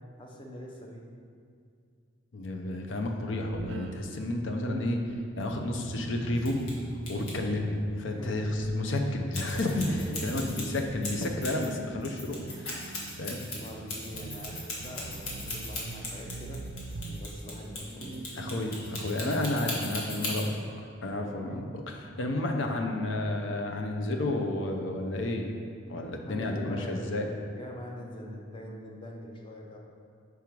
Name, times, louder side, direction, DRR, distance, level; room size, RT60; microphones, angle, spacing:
voice 1, 0.2-1.1 8.0-8.5 9.7-10.5 13.5-18.2 26.1-29.8, equal, 25° left, -1 dB, 0.7 m, -43 dB
voice 2, 2.3-5.0 5.4-6.6 7.1-9.8 10.2-12.4 13.2-13.4 18.4-20.6 21.0-25.5 25.9-27.3, left 2 dB, 60° left, 3 dB, 0.6 m, -31 dB
sound 1, 3.3-8.3 8.6-8.7 9.5-21.6, right 3 dB, 55° right, 0.3 m, -43 dB
sound 2, 6.4-6.7 7.1-7.3 9.3-11.7 12.0-20.5, left 2 dB, 85° left, 1.4 m, -38 dB
5.4 x 4.7 x 4.6 m, 2.3 s
head